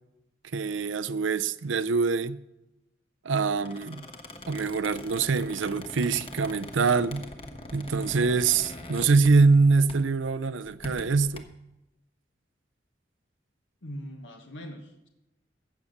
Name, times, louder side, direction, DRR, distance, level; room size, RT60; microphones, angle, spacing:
voice 1, 0.5-2.4 3.2-4.0 4.5-7.3 7.7-11.4, right 4 dB, 90° right, 0.6 m, -24 dB
Squeak, 3.5-9.6 9.9-10.2 10.6-11.4, left 1 dB, 30° left, 1.2 m, -43 dB
voice 2, 13.8-15.1, equal, 80° left, 1.4 m, -41 dB
15.5 x 7.2 x 6.6 m
head